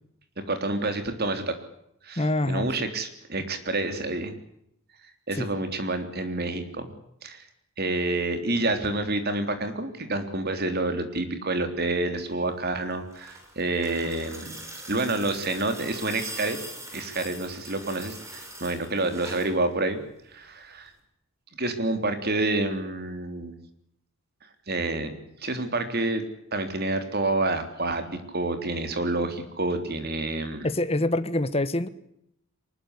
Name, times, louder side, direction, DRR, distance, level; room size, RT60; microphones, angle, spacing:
voice 1, 0.5-1.5 2.0-4.4 5.3-6.9 7.2-7.4 7.8-14.5 14.9-16.6 16.9-20.0 20.3-20.9 21.6-23.6 24.7-25.1 25.4-26.2 26.5-30.7, right 2 dB, 45° right, 8 dB, 3.5 m, -28 dB
voice 2, 2.2-2.7 5.4-5.5 30.6-31.9, left 1 dB, 25° left, 13 dB, 1.3 m, -25 dB
sound 1, 12.8-19.6 20.9-21.0, right 1 dB, 15° right, 5.9 m, -42 dB
24.0 x 20.5 x 8.3 m, 0.74 s
head